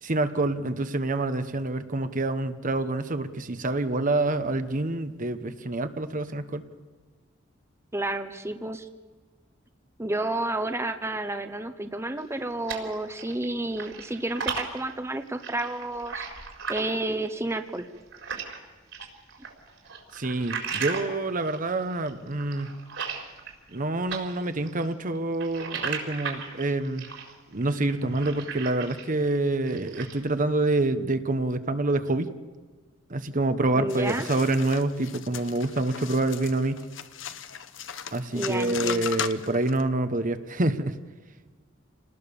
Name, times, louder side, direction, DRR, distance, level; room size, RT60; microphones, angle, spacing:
voice 1, 0.0-6.6 20.1-22.8 23.7-27.1 27.5-32.3 33.1-36.8 38.1-41.0, right 2 dB, 45° right, 10 dB, 1.1 m, -27 dB
voice 2, 7.9-8.9 10.0-16.3 16.7-17.9 33.7-34.3 38.3-39.2, right 2 dB, 15° right, 8 dB, 1.0 m, -31 dB
sound 1, 12.2-13.5 13.7-18.6 18.9-23.8 24.1-29.2 29.5-30.3, right 6 dB, 75° right, 4.3 m, -36 dB
sound 2, 33.9-39.8, left 8 dB, 75° left, 1.1 m, -37 dB
28.0 x 19.0 x 7.0 m, 1.4 s
head